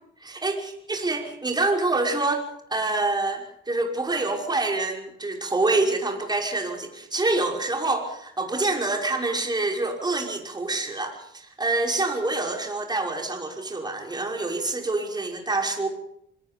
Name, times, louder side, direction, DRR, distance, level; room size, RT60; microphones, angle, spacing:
voice 1, 0.2-15.9, right 2 dB, 20° right, 1 dB, 5.9 m, -26 dB
26.5 x 20.5 x 5.5 m, 0.71 s
cardioid pair, 90°, 20 cm